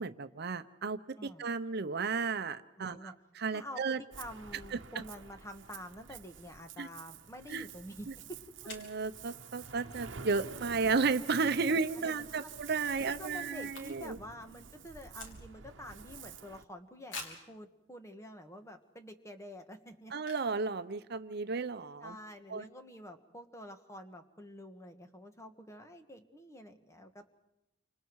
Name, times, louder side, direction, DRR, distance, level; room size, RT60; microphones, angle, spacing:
voice 1, 0.0-4.0 4.7-4.8 6.8-6.9 7.5-7.7 8.7-14.2 20.1-22.1 22.5-22.6, right 4 dB, 60° right, 11 dB, 0.7 m, -33 dB
voice 2, 2.7-3.1 3.5-8.7 11.7-12.5 13.2-20.1 22.0-27.3, equal, 15° left, 6 dB, 1.6 m, -48 dB
Ocean, 4.1-16.6, right 6 dB, 85° right, 0.9 m, -49 dB
sound 1, 8.6-9.0 11.9-12.2 12.5-12.6 12.8-14.3 14.5-15.8 16.2-16.3 17.1-17.5 18.2-18.3 18.8-19.0 20.2-20.6 20.9-21.0 21.2-21.5, left 3 dB, 90° left, 3.9 m, -47 dB
29.0 x 26.0 x 4.7 m, 0.90 s
head